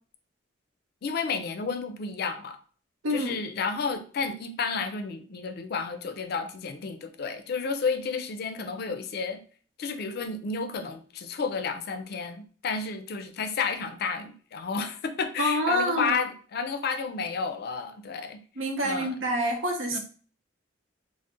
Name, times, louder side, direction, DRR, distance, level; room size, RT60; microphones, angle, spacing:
voice 1, 1.0-2.6 3.1-9.4 9.8-18.4 18.8-19.1 19.9-20.0, left 5 dB, 55° left, 8 dB, 0.4 m, -31 dB
voice 2, 3.0-3.4 15.4-16.2 18.6-20.0, equal, 90° right, 2 dB, 0.8 m, -27 dB
2.5 x 2.0 x 3.5 m, 0.42 s
head